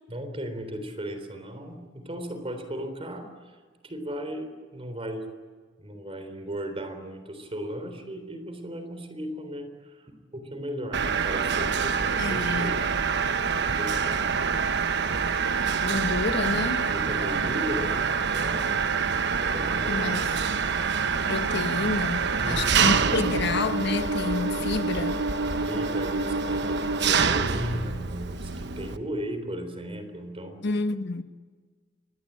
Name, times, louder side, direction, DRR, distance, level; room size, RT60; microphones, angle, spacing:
voice 1, 0.1-3.3 3.8-5.3 5.8-12.9 13.5-14.5 16.9-19.2 19.5-20.4 22.3-23.2 25.6-30.6, equal, 30° right, 3.7 m, -36 dB
Mechanisms, 10.9-29.0, right 5 dB, 60° right, 1.1 m, -26 dB
voice 2, 12.2-12.8 15.8-16.9 19.9-20.3 21.2-25.2 30.6-31.2, left 3 dB, 60° left, 1.1 m, -29 dB
25.0 x 19.5 x 8.8 m
head